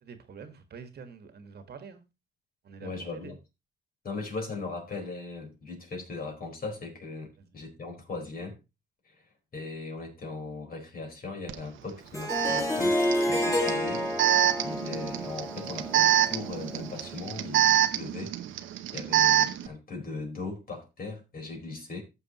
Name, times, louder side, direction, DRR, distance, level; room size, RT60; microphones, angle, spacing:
voice 1, 0.0-2.0 2.6-3.3 7.4-7.5, right 6 dB, 55° right, 1.6 m, -46 dB
voice 2, 2.8-3.4 4.0-8.6 9.5-14.0 14.6-18.3 18.9-22.0, left 3 dB, 45° left, 4.5 m, -39 dB
Alarm, 11.5-11.6 12.3-19.7, right 11 dB, 85° right, 0.9 m, -26 dB
Harp, 12.1-17.1, left 1 dB, 15° left, 3.3 m, -30 dB
14.5 x 6.8 x 3.0 m
cardioid pair, 90°, 20 cm